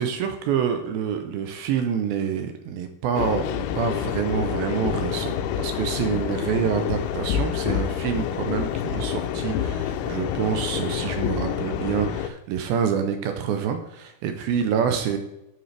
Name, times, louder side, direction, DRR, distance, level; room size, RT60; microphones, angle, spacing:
voice 1, 0.0-15.2, right 7 dB, 80° right, 7 dB, 2.2 m, -27 dB
sound 1, 3.2-12.3, left 9 dB, 85° left, 2.6 m, -27 dB
11.5 x 5.2 x 3.3 m, 0.91 s
omnidirectional pair, 4.7 m